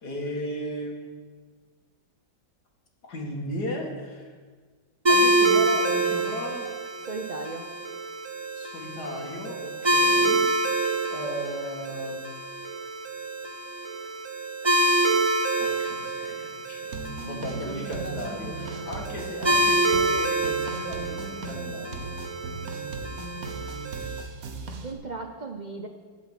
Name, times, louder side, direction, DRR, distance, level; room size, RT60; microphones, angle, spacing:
voice 1, 0.0-1.1 3.0-4.3 5.1-6.7 8.6-10.5 10.8-12.3 15.6-22.0, left 1 dB, 55° left, 0 dB, 2.5 m, -36 dB
sound 1, 5.0-24.2, right 2 dB, 20° right, 0.7 m, -27 dB
voice 2, 7.1-7.7 9.9-10.3 17.6-18.2 24.7-25.9, right 3 dB, 70° right, 4 dB, 0.4 m, -37 dB
sound 2, 16.9-24.9, right 3 dB, 50° right, 1.5 m, -38 dB
12.0 x 8.0 x 8.3 m, 1.5 s
omnidirectional pair, 2.1 m